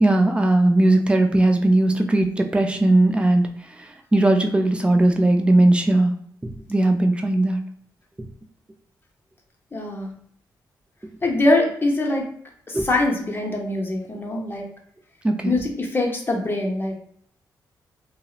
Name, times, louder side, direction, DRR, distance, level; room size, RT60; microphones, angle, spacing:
voice 1, 0.0-3.5 4.1-6.1 6.7-7.6 12.7-12.9 15.2-15.6, right 2 dB, 15° right, 4 dB, 0.4 m, -18 dB
voice 2, 9.7-10.1 11.2-12.3 12.7-14.6 15.4-17.0, left 2 dB, 25° left, 0 dB, 0.7 m, -23 dB
2.6 x 2.0 x 2.3 m, 0.64 s
cardioid pair, 65°, 8 cm